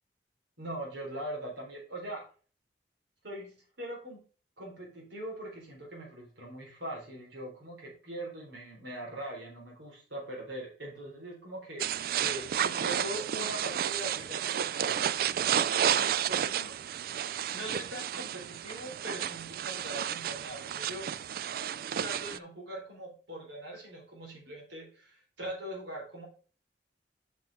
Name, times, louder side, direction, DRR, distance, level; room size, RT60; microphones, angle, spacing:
voice 1, 0.6-2.3 3.2-4.2 4.6-11.9 12.2-15.3 16.3-16.9 17.4-21.1 21.9-26.3, right 1 dB, 80° right, -3 dB, 3.8 m, -41 dB
sound 1, 11.8-22.4, right 9 dB, 55° right, 0.3 m, -31 dB
6.1 x 6.0 x 5.3 m, 0.38 s
head